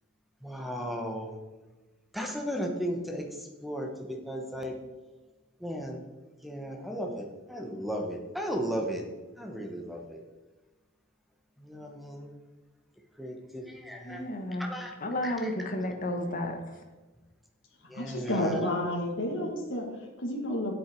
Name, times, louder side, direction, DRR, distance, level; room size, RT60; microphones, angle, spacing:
voice 1, 0.4-1.4 2.1-3.3 3.6-4.8 5.6-6.0 6.4-9.0 9.4-10.2 11.6-12.3 13.2-14.3 14.6-14.9 15.2-15.5 17.9-18.5, equal, ahead, 2 dB, 1.0 m, -35 dB
voice 2, 14.0-14.7 15.0-16.8, left 1 dB, 40° left, 5 dB, 1.1 m, -32 dB
voice 3, 17.9-20.7, left 1 dB, 60° left, 0 dB, 1.9 m, -31 dB
8.1 x 7.8 x 4.6 m, 1.2 s
head